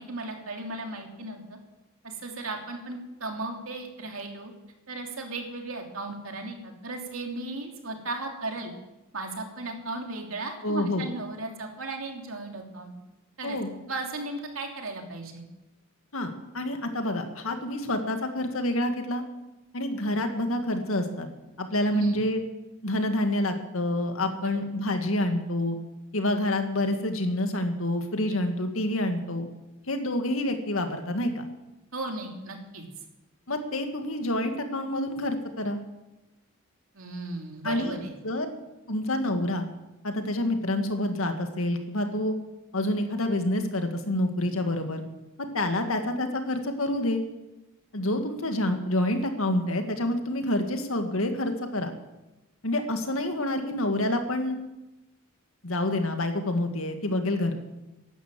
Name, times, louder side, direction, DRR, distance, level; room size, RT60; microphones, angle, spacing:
voice 1, 0.0-1.6 2.0-4.5 4.9-8.7 9.1-12.9 13.4-13.6 13.9-15.5 21.9-22.2 24.4-24.6 31.9-32.8 36.9-38.1, right 2 dB, 75° right, 2 dB, 3.0 m, -36 dB
voice 2, 10.6-11.1 13.4-13.7 16.1-19.2 19.7-21.3 21.6-22.4 22.8-25.8 26.1-29.5 29.9-31.5 33.5-35.8 37.6-38.0 38.2-38.5 38.9-39.6 40.0-42.3 42.7-45.0 45.5-47.2 47.9-51.9 52.6-54.6 55.6-57.6, left 1 dB, 75° left, 6 dB, 2.0 m, -27 dB
14.5 x 11.5 x 7.6 m, 1.0 s
head